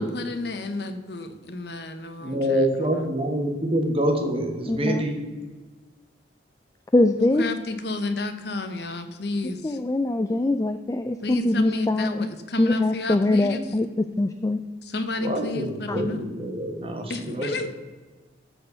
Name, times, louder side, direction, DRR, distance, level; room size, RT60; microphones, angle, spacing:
voice 1, 0.0-2.6 2.9-3.1 7.2-9.8 11.2-13.6 14.9-16.2 17.1-17.7, left 2 dB, 60° left, 8 dB, 1.0 m, -31 dB
voice 2, 2.2-5.2 15.2-17.5, right 1 dB, 30° right, 3 dB, 1.5 m, -26 dB
voice 3, 4.7-5.0 6.9-7.5 9.4-12.3 12.6-14.6 15.9-16.0, left 2 dB, 20° left, 9 dB, 0.3 m, -23 dB
13.5 x 4.5 x 6.9 m, 1.3 s
head